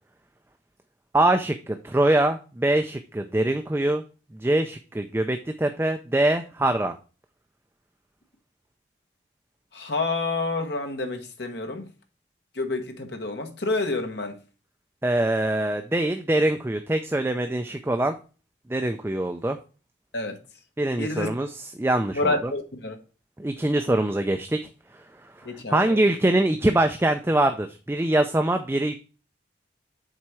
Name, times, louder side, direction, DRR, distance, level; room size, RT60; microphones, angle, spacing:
voice 1, 1.1-4.0 4.4-6.9 15.0-18.1 18.7-19.6 20.8-22.3 23.4-24.6 25.4-28.9, right 1 dB, 10° right, 0.4 m, -23 dB
voice 2, 9.7-11.9 12.5-14.4 20.1-20.4 21.0-21.3 22.1-23.0 25.4-26.0, left 2 dB, 60° left, 1.3 m, -28 dB
7.4 x 4.2 x 4.8 m
head